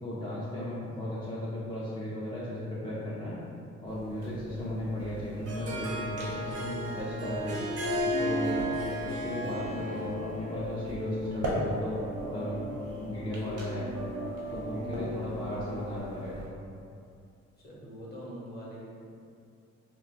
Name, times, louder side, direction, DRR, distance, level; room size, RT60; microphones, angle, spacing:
voice 1, 0.0-3.4 3.8-7.7 8.2-8.7 9.1-12.6 13.0-13.9 14.5-16.6, left 1 dB, 15° left, -8 dB, 0.4 m, -36 dB
sound 1, 3.8-16.5, right 1 dB, 85° right, 0.8 m, -42 dB
Harp, 5.1-10.4, equal, 55° right, 0.5 m, -33 dB
sound 2, 9.4-16.0, left 1 dB, 90° left, 0.8 m, -39 dB
voice 2, 12.2-12.7 13.1-13.4 14.0-15.3 17.6-19.1, equal, 35° left, -6 dB, 0.8 m, -46 dB
2.3 x 2.2 x 3.8 m, 2.5 s
cardioid pair, 120°, 29 cm